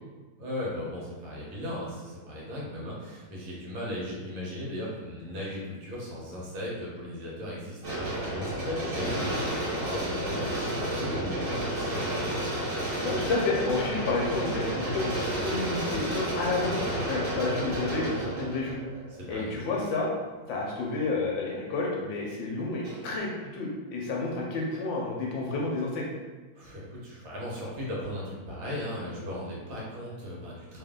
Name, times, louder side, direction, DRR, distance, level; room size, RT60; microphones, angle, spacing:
voice 1, 0.4-12.4 19.1-19.5 26.5-30.8, left 1 dB, 70° right, -5 dB, 1.6 m, -37 dB
sound 1, 7.8-19.9 20.5-20.6 22.8-23.2, right 1 dB, 45° right, 0.7 m, -31 dB
voice 2, 13.0-16.7 17.0-18.8 19.3-20.1 20.5-26.0, left 3 dB, 70° left, -2 dB, 1.3 m, -30 dB
3.4 x 2.5 x 3.6 m, 1.4 s
omnidirectional pair, 2.3 m